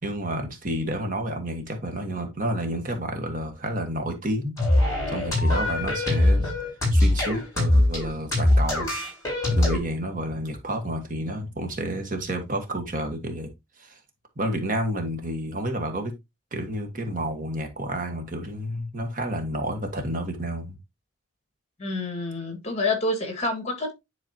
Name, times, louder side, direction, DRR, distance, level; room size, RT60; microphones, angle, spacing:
voice 1, 0.0-4.6 5.1-6.5 6.9-8.9 9.5-13.5 13.8-14.0 14.4-16.1 16.5-20.8, right 1 dB, 40° right, 1.5 m, -30 dB
sound 1, 4.6-9.8, left 1 dB, 15° left, 5.1 m, -22 dB
voice 2, 21.8-24.0, left 2 dB, 30° left, 1.9 m, -28 dB
10.5 x 3.9 x 2.8 m
head